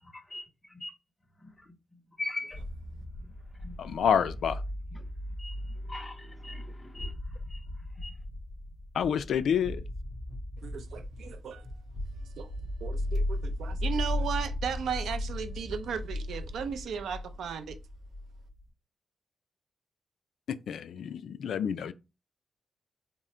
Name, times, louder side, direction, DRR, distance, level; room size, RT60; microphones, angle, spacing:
voice 1, 0.1-1.0 1.4-1.8 2.2-2.6 3.2-3.3 3.6-3.8 4.9-5.0 5.4-7.1 7.5-7.7 8.0-8.1, left 2 dB, 10° left, 0.5 m, -41 dB
sound 1, 2.5-18.7, left 1 dB, 40° left, 1.8 m, -37 dB
voice 2, 3.8-4.6 8.9-9.8 20.5-21.9, left 8 dB, 80° left, 0.3 m, -28 dB
voice 3, 10.6-11.6 12.4-12.5 12.8-17.8, right 7 dB, 90° right, 0.5 m, -36 dB
3.7 x 2.1 x 4.3 m
wide cardioid pair, 155°, 0 cm